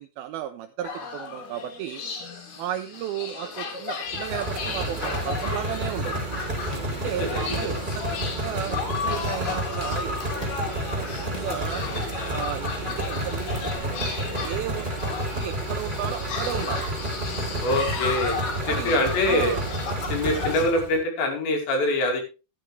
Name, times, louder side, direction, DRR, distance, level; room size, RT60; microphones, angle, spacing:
voice 1, 0.0-2.0 2.6-6.2 6.9-10.2 10.7-11.8 12.3-14.9 15.2-16.9 18.7-19.7, right 11 dB, 80° right, 9 dB, 2.2 m, -34 dB
sound 1, 0.8-20.7, left 5 dB, 65° left, 4.3 m, -34 dB
sound 2, 4.1-21.0, right 1 dB, 15° right, 3.0 m, -31 dB
Drum kit / Drum, 6.4-7.8 8.1-13.8, equal, 25° left, 0.8 m, -42 dB
voice 2, 7.0-7.8 17.6-19.6 20.1-22.2, left 1 dB, 80° left, 2 dB, 4.8 m, -25 dB
13.0 x 9.8 x 3.3 m, 0.31 s
omnidirectional pair, 5.0 m